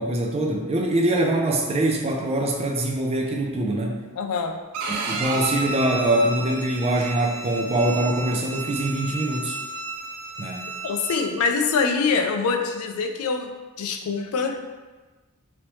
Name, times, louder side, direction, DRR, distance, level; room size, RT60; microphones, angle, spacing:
voice 1, 0.0-4.0 5.1-9.6 10.4-10.6, right 1 dB, 30° right, 1 dB, 0.4 m, -23 dB
voice 2, 4.2-4.6 10.8-13.5 13.8-14.6, left 5 dB, 80° left, 5 dB, 0.4 m, -24 dB
Bowed string instrument, 4.7-11.2, right 2 dB, 90° right, 0.4 m, -32 dB
3.1 x 2.9 x 3.0 m, 1.2 s
head